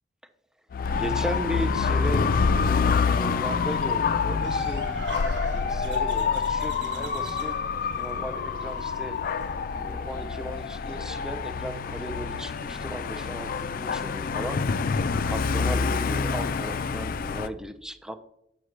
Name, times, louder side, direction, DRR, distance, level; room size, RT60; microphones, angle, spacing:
Dog / Motorcycle, 0.7-17.5, left 5 dB, 55° left, 0.4 m, -27 dB
voice 1, 0.9-5.0 5.5-7.6 7.9-9.2 9.8-14.6 15.3-18.1, right 1 dB, 5° right, 9 dB, 0.5 m, -36 dB
sound 1, 4.4-9.8, right 7 dB, 90° right, 0.6 m, -46 dB
sound 2, 5.2-14.4, equal, 70° right, 1.3 m, -48 dB
8.0 x 6.3 x 3.2 m, 0.79 s
head